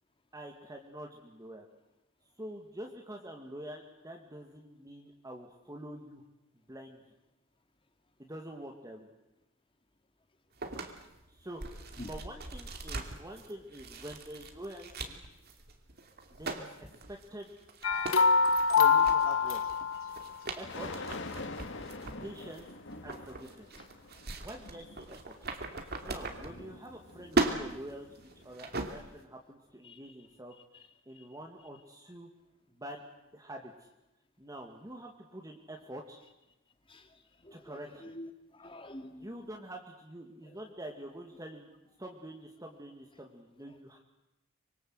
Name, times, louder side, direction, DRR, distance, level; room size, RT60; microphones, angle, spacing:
voice 1, 0.3-1.7 2.4-6.2 6.7-7.0 8.2-9.1 11.3-15.2 16.3-16.7 17.1-17.5 18.7-19.6 20.6-21.1 22.2-22.7 23.0-23.7 24.0-25.4 26.0-28.1 28.4-32.3 32.7-33.0 33.3-33.9 34.4-36.2 37.5-38.0 39.2-41.7 42.0-44.0, right 1 dB, 15° right, 2 dB, 2.1 m, -46 dB
throwing pile of books on floor, 10.6-27.0 27.3-29.2, right 2 dB, 50° right, 2.7 m, -39 dB
sound 1, 17.8-20.3, left 5 dB, 85° left, 1.6 m, -25 dB
sound 2, 19.2-19.4 20.6-28.5, left 2 dB, 60° left, 2.1 m, -46 dB
voice 2, 37.4-39.4 40.5-40.6, left 1 dB, 25° left, 6 dB, 2.5 m, -47 dB
25.0 x 23.5 x 8.0 m, 0.93 s
head